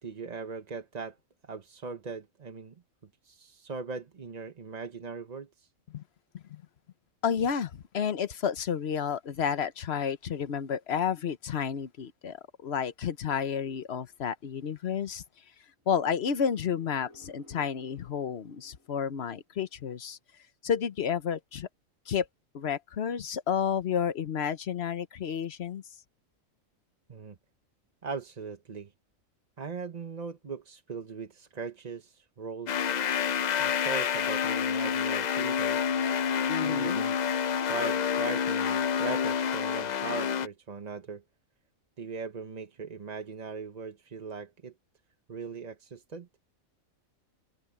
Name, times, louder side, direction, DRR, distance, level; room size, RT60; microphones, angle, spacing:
voice 1, 0.0-1.2 1.4-2.8 3.2-5.7 27.1-27.4 28.0-28.9 29.6-32.9 33.6-35.9 36.6-37.2 37.6-41.2 42.0-44.7 45.3-46.3, right 5 dB, 35° right, 0.9 m, -39 dB
voice 2, 7.2-15.2 15.9-20.2 20.6-21.7 22.1-22.3 22.5-25.8 36.5-37.1, left 7 dB, 55° left, 1.1 m, -31 dB
sound 1, 15.9-19.7, left 1 dB, 80° right, 8.5 m, -57 dB
sound 2, 32.7-40.5, left 7 dB, 85° left, 0.3 m, -28 dB
omnidirectional pair, 1.4 m